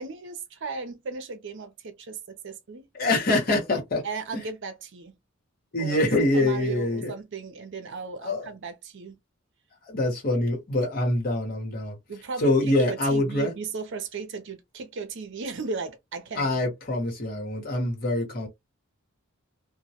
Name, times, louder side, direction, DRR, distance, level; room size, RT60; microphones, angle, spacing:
voice 1, 0.0-2.8 4.0-5.1 5.8-6.1 6.3-9.2 12.1-16.7, right 4 dB, 60° right, 0.6 m, -36 dB
voice 2, 2.9-4.0 4.3-4.4 5.7-7.1 8.2-8.5 9.9-12.0 12.4-13.5 16.3-18.5, left 1 dB, 45° left, 1.0 m, -25 dB
2.1 x 2.1 x 2.7 m
head